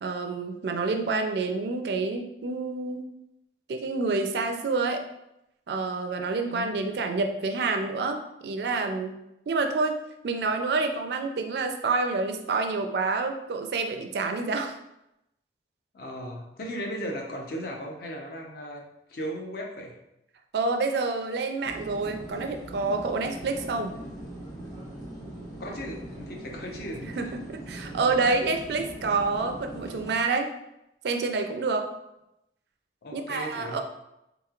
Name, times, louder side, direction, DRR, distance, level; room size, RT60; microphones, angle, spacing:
voice 1, 0.0-3.0 3.7-5.0 5.7-9.2 9.5-10.0 10.2-14.8 20.5-23.9 27.0-30.5 31.0-31.9 33.1-33.8, right 3 dB, 65° right, 5 dB, 0.4 m, -28 dB
voice 2, 6.4-6.9 15.9-18.8 19.1-20.0 25.6-27.3 33.0-33.8, equal, 55° left, 1 dB, 0.6 m, -36 dB
sound 1, 21.6-30.1, right 1 dB, 20° left, 0.9 m, -41 dB
3.6 x 2.9 x 2.4 m, 0.86 s
head